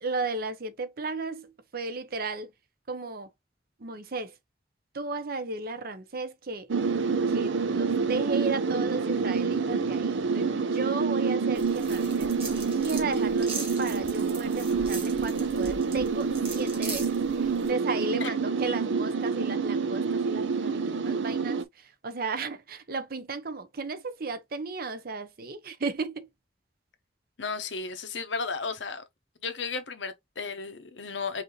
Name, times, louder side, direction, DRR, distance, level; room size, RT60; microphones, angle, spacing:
voice 1, 0.0-2.5 2.9-3.3 3.8-4.4 4.9-6.7 7.3-26.3, right 3 dB, 55° right, 0.7 m, -35 dB
sound 1, 6.7-21.6, right 5 dB, 85° right, 0.5 m, -27 dB
sound 2, 11.6-17.7, right 4 dB, 30° right, 2.0 m, -40 dB
voice 2, 27.4-29.0 29.4-31.4, left 4 dB, 85° left, 1.0 m, -34 dB
5.2 x 2.7 x 3.1 m
head